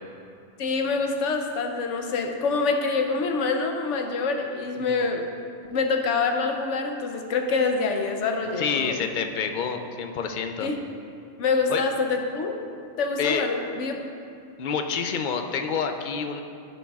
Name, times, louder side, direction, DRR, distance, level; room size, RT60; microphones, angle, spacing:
voice 1, 0.6-5.3 5.7-9.0 10.6-10.8 11.4-12.6 13.0-14.0, left 4 dB, 85° left, 4 dB, 1.0 m, -26 dB
voice 2, 8.6-10.7 11.7-11.8 13.2-13.4 14.6-16.4, left 6 dB, 60° left, 6 dB, 0.5 m, -28 dB
11.0 x 6.9 x 2.4 m, 2.5 s
omnidirectional pair, 1.2 m